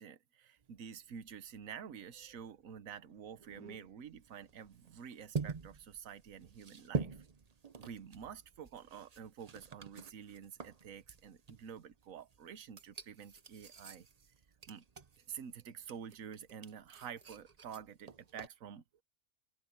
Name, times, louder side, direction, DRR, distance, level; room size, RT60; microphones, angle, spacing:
voice 1, 0.0-7.2 7.8-14.1 14.7-14.8 15.3-18.8, right 8 dB, 65° right, 1.4 m, -49 dB
sound 1, 0.6-18.5, right 5 dB, 35° right, 0.8 m, -46 dB
open air
omnidirectional pair, 1.5 m